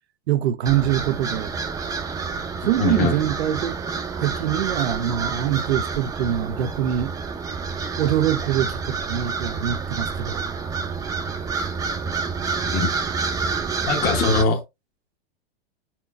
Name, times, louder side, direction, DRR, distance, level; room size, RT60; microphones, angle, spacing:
voice 1, 0.3-1.5 2.6-3.8 4.2-7.1 8.0-10.4, right 11 dB, 85° right, 0.6 m, -24 dB
sound 1, 0.6-14.4, right 5 dB, 10° right, 0.5 m, -28 dB
voice 2, 2.8-3.2 12.6-12.9 13.9-14.6, left 4 dB, 30° left, 0.9 m, -21 dB
5.1 x 4.4 x 2.4 m
hypercardioid pair, 140°, 31 cm